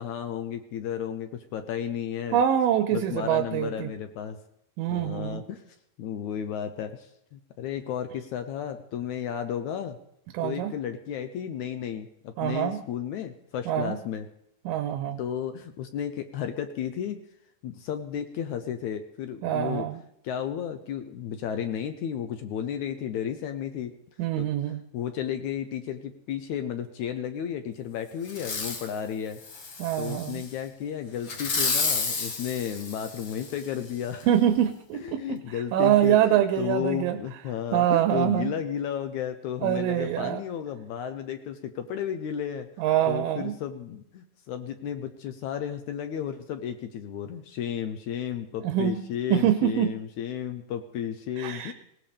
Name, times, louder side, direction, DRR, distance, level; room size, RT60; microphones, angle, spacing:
voice 1, 0.0-2.4 2.9-4.4 4.9-5.6 6.0-10.0 10.4-14.3 15.2-17.2 17.6-19.9 20.2-23.9 24.4-29.4 30.0-34.3 35.0-42.7 43.1-51.7, left 9 dB, 70° left, 7 dB, 1.9 m, -33 dB
voice 2, 2.3-3.9 4.8-5.4 10.3-10.7 12.4-12.8 13.7-14.0 14.7-15.2 19.4-20.0 24.2-24.8 29.8-30.4 34.3-35.4 35.7-37.2 37.7-38.5 39.6-40.4 42.8-43.6 48.6-49.0 49.3-49.9 51.4-51.7, right 11 dB, 80° right, 9 dB, 2.4 m, -24 dB
Fireworks, 28.3-28.9 29.4-30.5 31.3-33.6 34.2-34.3, left 4 dB, 45° left, 1.7 m, -31 dB
19.5 x 17.5 x 3.5 m, 0.75 s
omnidirectional pair, 4.0 m